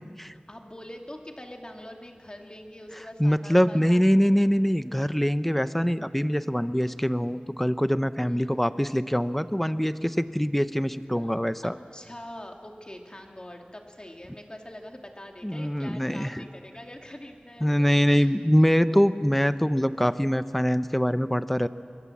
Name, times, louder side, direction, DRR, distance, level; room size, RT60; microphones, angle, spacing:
voice 1, 0.5-4.1 8.2-8.6 11.2-11.4 11.6-18.4, left 1 dB, 30° left, 2 dB, 2.6 m, -44 dB
voice 2, 3.2-11.8 15.4-16.4 17.6-21.7, equal, 5° left, 12 dB, 0.8 m, -23 dB
25.5 x 22.5 x 7.4 m, 2.2 s
wide cardioid pair, 55°, 3 cm